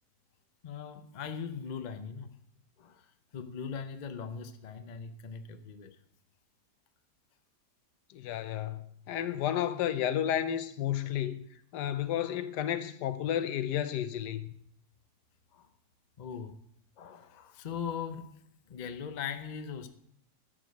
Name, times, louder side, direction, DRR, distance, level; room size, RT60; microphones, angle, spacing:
voice 1, 0.6-2.3 2.8-3.1 3.3-6.0 15.5-15.7 16.2-16.5 17.0-18.4 18.7-19.9, left 6 dB, 50° left, 0.5 m, -40 dB
voice 2, 8.1-11.4 11.7-14.5, left 10 dB, 80° left, 1.3 m, -32 dB
12.5 x 5.1 x 6.3 m
omnidirectional pair, 1.7 m